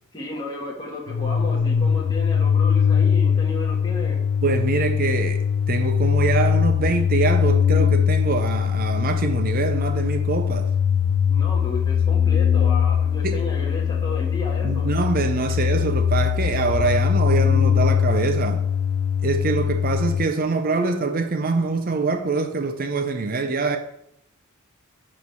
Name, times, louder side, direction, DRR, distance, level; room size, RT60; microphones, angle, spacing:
voice 1, 0.1-4.2 11.3-14.9, left 2 dB, 20° left, 1.7 m, -33 dB
sound 1, 1.1-20.3, left 7 dB, 85° left, 0.3 m, -21 dB
voice 2, 4.4-10.7 13.2-13.4 14.6-18.7 19.2-23.8, right 4 dB, 40° right, 0.6 m, -24 dB
9.5 x 3.2 x 6.8 m
head